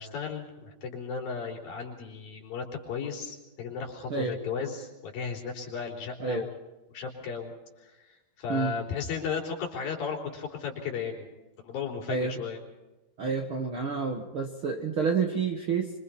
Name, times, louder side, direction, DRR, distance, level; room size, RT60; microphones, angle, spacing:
voice 1, 0.0-6.5 6.9-7.5 7.8-11.3 11.6-12.6, left 6 dB, 70° left, 1 dB, 5.4 m, -35 dB
voice 2, 13.2-15.9, right 5 dB, 50° right, 3 dB, 1.6 m, -29 dB
25.5 x 25.5 x 4.2 m, 1.1 s
omnidirectional pair, 4.3 m